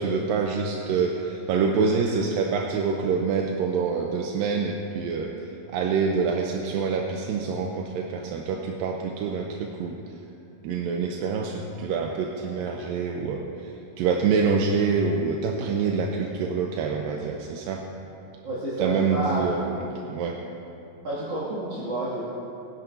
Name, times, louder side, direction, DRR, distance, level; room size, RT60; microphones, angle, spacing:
voice 1, 0.0-5.4 5.7-10.0 10.6-17.8 18.8-19.8 20.1-20.4, right 5 dB, 80° right, 1 dB, 2.4 m, -26 dB
voice 2, 18.4-19.5 21.0-22.2, right 1 dB, 45° right, -11 dB, 3.1 m, -29 dB
22.0 x 10.5 x 2.7 m, 2.8 s
omnidirectional pair, 4.1 m